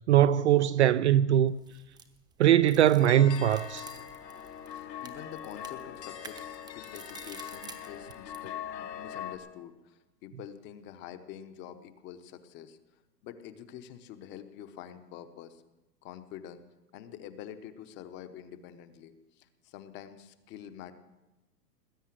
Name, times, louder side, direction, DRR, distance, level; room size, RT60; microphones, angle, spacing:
voice 1, 0.1-1.5 2.4-3.9, right 11 dB, 45° right, 0.5 m, -21 dB
sound 1, 1.5-8.5, right 5 dB, 10° right, 0.8 m, -51 dB
sound 2, 3.0-9.4, left 9 dB, 80° left, 2.7 m, -42 dB
voice 2, 4.7-12.8 13.2-15.6 16.0-16.6 16.9-20.9, left 10 dB, 25° left, 0.9 m, -46 dB
19.5 x 9.3 x 7.6 m
hypercardioid pair, 140°, 49 cm